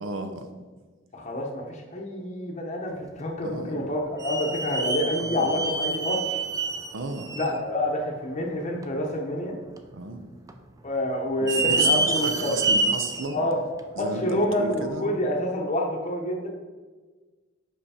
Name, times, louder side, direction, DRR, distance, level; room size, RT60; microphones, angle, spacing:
voice 1, 0.0-0.5 3.4-3.9 5.2-5.5 6.9-7.3 9.9-10.2 11.4-13.4 14.0-15.1, right 3 dB, 85° right, 7 dB, 0.7 m, -33 dB
voice 2, 1.1-6.4 7.3-9.6 10.8-12.5 13.3-13.6 14.0-16.5, left 1 dB, 35° left, -1 dB, 0.8 m, -28 dB
sound 1, 3.4-3.5 4.2-7.6 8.1-8.2 8.8-8.9 9.8-10.2 10.5-10.6 11.3-13.3 13.8-13.9 14.8-14.9, right 2 dB, 20° right, 0.4 m, -27 dB
5.5 x 5.1 x 4.2 m, 1.4 s
head